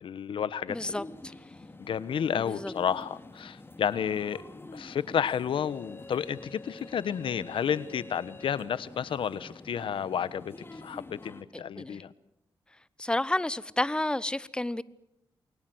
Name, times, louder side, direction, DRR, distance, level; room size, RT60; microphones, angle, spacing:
voice 1, 0.0-1.0 1.8-4.4 4.7-10.5 10.8-12.1, left 8 dB, 80° left, 1.2 m, -31 dB
sound 1, 0.7-11.4, left 2 dB, 25° left, 2.8 m, -47 dB
voice 2, 0.7-1.3 2.4-2.7 11.5-12.0 13.0-14.8, left 1 dB, 10° left, 0.9 m, -31 dB
28.5 x 22.5 x 7.9 m
cardioid pair, 70°, 9 cm